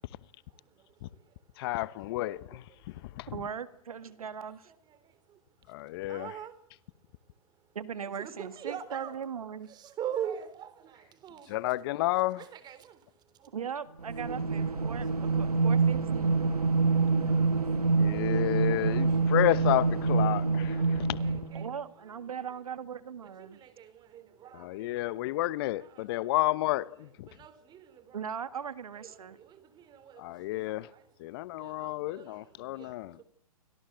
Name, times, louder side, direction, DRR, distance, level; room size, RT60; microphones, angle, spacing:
voice 1, 0.5-1.4 2.1-3.3 4.7-5.4 6.1-6.6 8.2-9.2 9.7-11.8 12.4-13.6 14.5-15.4 15.8-15.9 16.7-19.4 20.5-22.3 23.2-25.1 25.8-26.6 27.2-28.2 28.9-33.2, right 9 dB, 20° right, 3.6 m, -45 dB
voice 2, 1.6-2.6 3.2-3.3 5.7-6.3 11.5-12.4 18.0-21.2 24.6-26.8 27.2-27.3 30.2-30.9 31.2-33.1, left 17 dB, 40° left, 1.1 m, -30 dB
voice 3, 3.3-4.7 7.8-9.7 13.5-16.5 21.5-23.6 28.1-29.4, right 7 dB, 70° right, 1.8 m, -39 dB
sound 1, 14.0-21.7, right 4 dB, 90° right, 1.7 m, -26 dB
29.5 x 24.0 x 8.0 m
hypercardioid pair, 120°, 19 cm